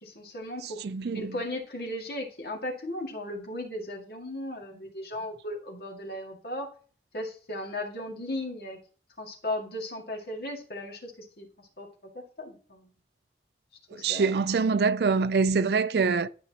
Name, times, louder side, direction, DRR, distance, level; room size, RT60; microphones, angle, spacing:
voice 1, 0.0-0.8 1.1-6.7 7.1-8.8 9.2-11.9 12.1-12.9 13.9-14.4, left 1 dB, 60° left, 2.1 m, -36 dB
voice 2, 0.8-1.3 13.9-16.3, right 4 dB, 65° right, 0.4 m, -25 dB
11.0 x 5.1 x 2.9 m
head